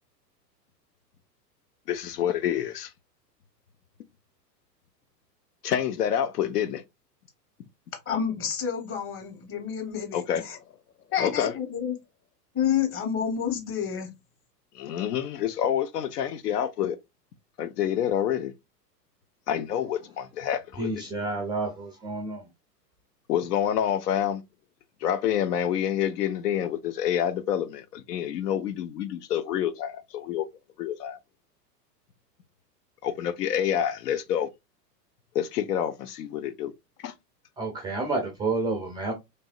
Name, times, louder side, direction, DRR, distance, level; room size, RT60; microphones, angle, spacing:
voice 1, 1.9-2.9 5.6-6.8 10.1-10.4 11.2-11.5 14.7-17.0 17.6-18.5 19.5-20.9 23.3-24.4 25.0-30.5 30.8-31.2 33.0-34.5 35.3-36.7 37.0-37.1, left 10 dB, 70° left, 0.7 m, -27 dB
voice 2, 8.1-10.6 11.1-11.9 12.5-14.1, left 8 dB, 25° left, 1.2 m, -29 dB
voice 3, 20.8-22.5 37.6-39.1, right 3 dB, 10° right, 0.4 m, -30 dB
3.4 x 3.1 x 2.4 m
hypercardioid pair, 100°, 50 cm